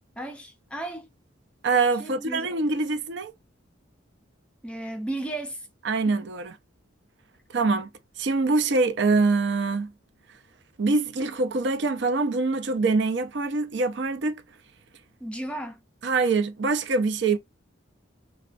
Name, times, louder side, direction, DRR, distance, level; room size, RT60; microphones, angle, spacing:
voice 1, 0.2-1.1 2.0-2.5 4.6-5.7 6.1-6.2 15.2-15.8, right 1 dB, 5° left, 0.4 m, -34 dB
voice 2, 1.6-3.3 5.8-6.5 7.5-7.9 8.2-9.9 10.8-14.4 16.0-17.4, right 3 dB, 65° right, 0.5 m, -24 dB
3.2 x 2.2 x 2.5 m
head